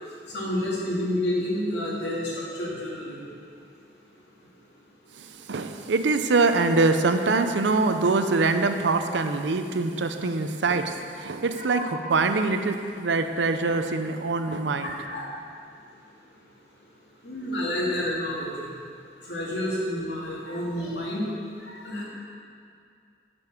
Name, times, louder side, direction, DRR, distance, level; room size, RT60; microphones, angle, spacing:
voice 1, 0.3-3.2 11.2-11.3 11.7-11.9 14.8-15.3 17.2-18.7 19.2-21.2 21.6-22.0, left 1 dB, 75° left, -5 dB, 2.2 m, -29 dB
voice 2, 5.2-11.8 12.1-14.9, right 3 dB, 85° right, 7 dB, 0.6 m, -24 dB
9.4 x 5.3 x 5.8 m, 2.4 s
head